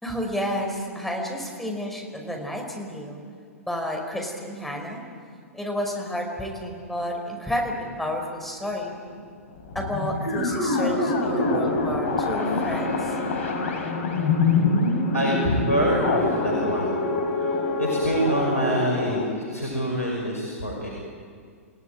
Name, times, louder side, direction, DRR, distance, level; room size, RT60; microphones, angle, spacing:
voice 1, 0.0-3.2 3.6-5.0 5.5-8.9 9.8-13.2, equal, 5° left, 0 dB, 5.2 m, -31 dB
sound 1, 8.9-9.0 9.6-19.3, left 3 dB, 55° left, 4.1 m, -25 dB
voice 2, 15.1-17.0 17.3-20.9, right 1 dB, 85° left, -2 dB, 5.8 m, -26 dB
29.5 x 18.0 x 9.2 m, 2.1 s
figure-of-eight pair, 105°, 8 cm